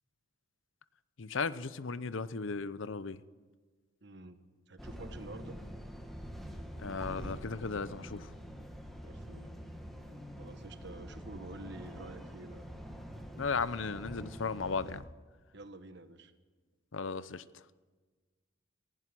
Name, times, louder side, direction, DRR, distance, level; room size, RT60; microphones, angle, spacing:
voice 1, 1.2-3.2 6.8-8.3 13.4-15.0 16.9-17.4, left 4 dB, 75° left, 0.7 m, -36 dB
voice 2, 4.0-5.6 9.0-9.5 10.4-12.6 15.5-16.3, right 2 dB, 55° right, 1.4 m, -49 dB
sound 1, 4.8-15.0, equal, ahead, 1.8 m, -45 dB
17.0 x 16.0 x 9.9 m
head